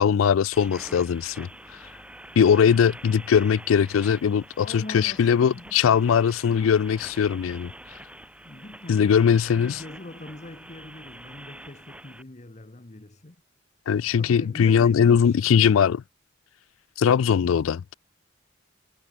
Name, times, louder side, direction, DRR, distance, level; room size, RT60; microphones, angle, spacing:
voice 1, 0.0-1.5 2.4-7.7 8.9-9.8 13.9-16.0 17.0-17.9, left 7 dB, 85° left, 0.4 m, -20 dB
sound 1, 0.5-12.2, right 1 dB, 5° right, 4.1 m, -46 dB
voice 2, 4.5-6.2 8.4-9.1 9.5-13.4 14.1-15.9, left 2 dB, 35° left, 1.2 m, -42 dB
head